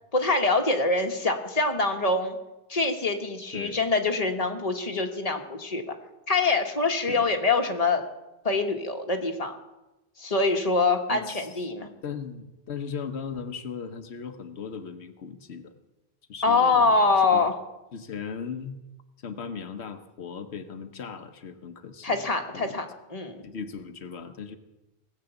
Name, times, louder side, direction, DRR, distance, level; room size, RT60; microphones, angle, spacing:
voice 1, 0.1-2.4 2.7-5.9 6.3-8.0 8.4-9.5 10.2-11.9 16.4-17.5 22.0-22.8 23.1-23.5, left 3 dB, 35° left, 4 dB, 1.4 m, -24 dB
voice 2, 11.1-11.6 12.0-15.7 16.3-17.5 17.9-18.8 19.2-22.3 22.5-22.8 23.4-24.6, left 6 dB, 90° left, 7 dB, 1.2 m, -38 dB
19.0 x 8.1 x 7.0 m, 1.0 s
omnidirectional pair, 1.1 m